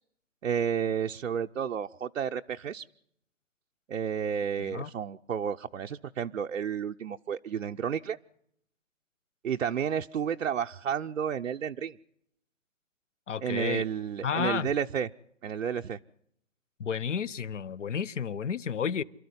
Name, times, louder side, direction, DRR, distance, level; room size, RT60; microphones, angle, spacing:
voice 1, 0.4-2.8 3.9-8.2 9.4-12.0 13.4-15.1 15.4-16.0, right 8 dB, 80° right, 0.8 m, -31 dB
voice 2, 4.6-4.9 13.3-13.8 14.2-14.7 16.8-19.0, left 7 dB, 70° left, 1.0 m, -31 dB
27.5 x 13.0 x 9.6 m
hypercardioid pair, 165°, 38 cm